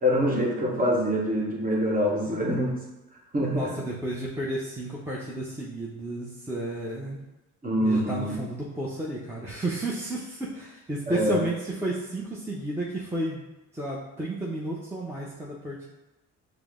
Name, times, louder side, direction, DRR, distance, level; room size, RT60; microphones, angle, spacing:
voice 1, 0.0-2.8 3.3-3.7 7.6-8.4 11.1-11.4, equal, 30° right, -3 dB, 1.1 m, -25 dB
voice 2, 3.5-7.2 7.8-13.4 13.7-15.8, right 1 dB, 10° right, -5 dB, 0.6 m, -32 dB
5.0 x 2.0 x 3.6 m, 1.0 s
cardioid pair, 90°, 30 cm